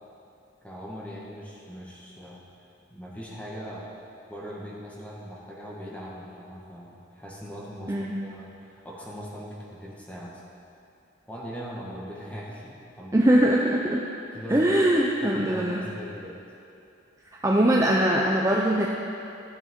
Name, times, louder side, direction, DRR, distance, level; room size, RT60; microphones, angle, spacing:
voice 1, 0.6-2.4 2.9-3.9 4.3-10.4 11.3-13.3 14.3-16.3, equal, 5° left, -5 dB, 1.3 m, -40 dB
voice 2, 13.1-14.0 14.5-15.8 17.4-18.9, right 1 dB, 15° right, -2 dB, 0.5 m, -21 dB
13.5 x 6.9 x 3.7 m, 2.7 s
head